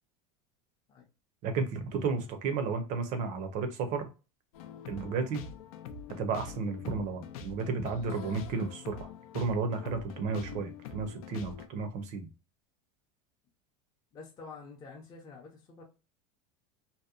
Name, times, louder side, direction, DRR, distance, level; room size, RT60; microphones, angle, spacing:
voice 1, 1.4-4.1 4.9-5.4 6.2-9.1 9.3-12.3, right 4 dB, 45° right, 0.5 m, -33 dB
sound 1, 4.5-11.7, left 6 dB, 80° left, 0.4 m, -45 dB
voice 2, 14.1-15.8, left 4 dB, 20° left, 0.5 m, -48 dB
2.7 x 2.1 x 2.4 m
supercardioid pair, 155°, 18 cm